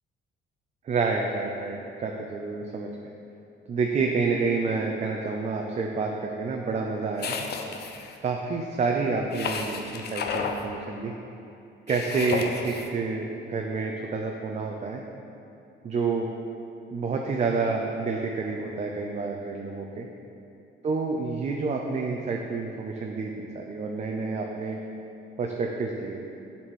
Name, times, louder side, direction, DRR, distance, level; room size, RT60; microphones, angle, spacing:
voice 1, 0.8-2.9 3.7-7.3 8.2-11.1 11.9-15.0 15.8-16.3 16.9-20.1 20.8-24.8 25.4-26.2, right 4 dB, 35° right, 1 dB, 0.5 m, -29 dB
sound 1, 7.2-8.1 9.3-10.6 11.9-12.9, left 5 dB, 55° left, 0.6 m, -32 dB
7.6 x 4.2 x 6.2 m, 2.7 s
cardioid pair, 135°, 20 cm